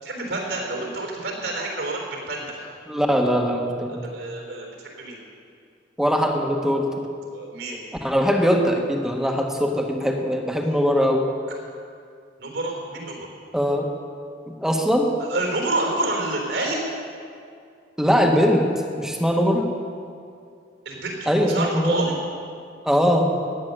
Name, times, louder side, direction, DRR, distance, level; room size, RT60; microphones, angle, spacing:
voice 1, 0.0-2.7 3.9-5.2 7.3-7.8 12.4-13.3 15.3-16.8 20.9-22.2, right 2 dB, 80° right, 0 dB, 3.7 m, -28 dB
voice 2, 2.9-4.0 6.0-7.1 8.0-11.3 13.5-13.9 14.5-15.1 18.0-18.6 19.0-19.7 21.3-22.1 22.8-23.3, equal, 5° right, 2 dB, 1.3 m, -21 dB
15.5 x 10.5 x 6.7 m, 2.3 s
head